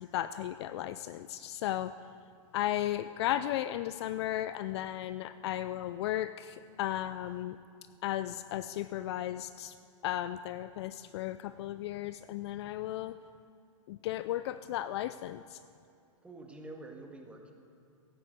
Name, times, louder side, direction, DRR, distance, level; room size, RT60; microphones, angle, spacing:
voice 1, 0.0-2.0 2.5-7.6 8.0-9.7 10.0-13.2 13.9-15.6, left 13 dB, 50° left, 14 dB, 0.4 m, -35 dB
voice 2, 16.2-17.5, right 2 dB, 5° right, 1 dB, 1.8 m, -47 dB
16.5 x 9.1 x 7.9 m, 2.4 s
hypercardioid pair, 130°, 18 cm